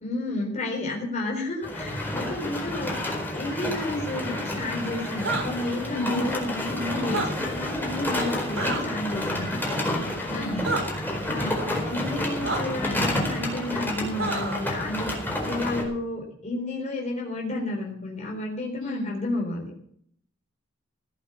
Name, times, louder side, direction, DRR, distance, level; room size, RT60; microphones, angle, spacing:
voice 1, 0.0-2.9 3.3-9.6 10.3-10.8 11.3-15.1 15.4-19.7, left 2 dB, 35° left, -1 dB, 4.0 m, -31 dB
sound 1, 1.6-15.8, left 1 dB, 10° left, 4.5 m, -30 dB
sound 2, 5.2-5.5 7.0-7.3 8.6-8.8 10.6-10.8 12.4-12.6 14.2-14.6, right 3 dB, 80° right, 4.4 m, -28 dB
voice 2, 5.9-6.3 9.8-10.7 18.8-19.1, equal, 80° left, 1 dB, 5.2 m, -32 dB
17.5 x 8.8 x 6.9 m, 0.65 s
head